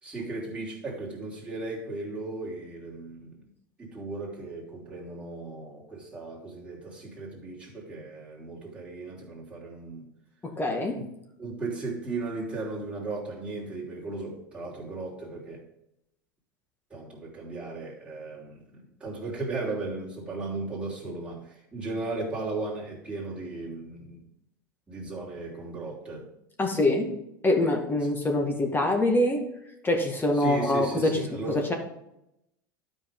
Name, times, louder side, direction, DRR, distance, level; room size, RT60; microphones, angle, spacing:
voice 1, 0.0-3.4 3.8-10.0 10.9-11.0 11.4-15.6 16.9-24.2 24.9-26.3 30.3-31.7, right 3 dB, 10° right, 3.2 m, -36 dB
voice 2, 10.4-11.0 26.6-27.1 27.4-29.4 29.8-31.7, left 1 dB, 20° left, 1.9 m, -25 dB
12.5 x 5.2 x 3.7 m
hypercardioid pair, 85°, 11 cm